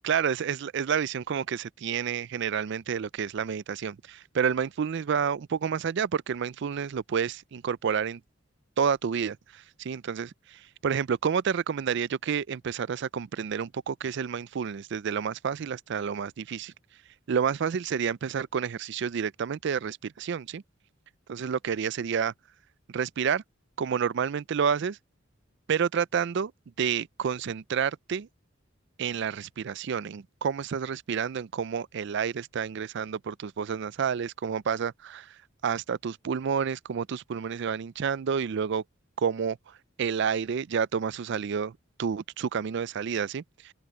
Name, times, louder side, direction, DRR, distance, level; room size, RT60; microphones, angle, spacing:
voice 1, 0.0-8.2 8.8-16.7 17.3-20.6 21.3-22.3 22.9-23.4 23.8-25.0 25.7-26.5 26.8-28.3 29.0-38.8 39.2-43.7, right 7 dB, 65° right, 0.4 m, -29 dB
head